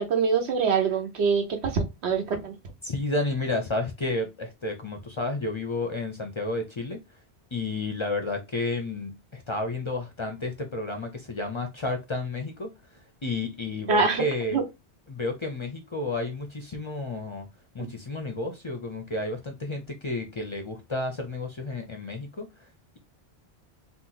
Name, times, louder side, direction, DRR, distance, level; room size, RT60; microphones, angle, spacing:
voice 1, 0.0-2.5 13.9-14.2 14.5-14.6, right 5 dB, 75° right, 1.1 m, -24 dB
voice 2, 2.8-7.0 7.5-12.7 13.2-14.6 15.1-17.5 17.7-22.7, left 2 dB, 40° left, 0.4 m, -31 dB
2.9 x 2.0 x 3.8 m
omnidirectional pair, 1.1 m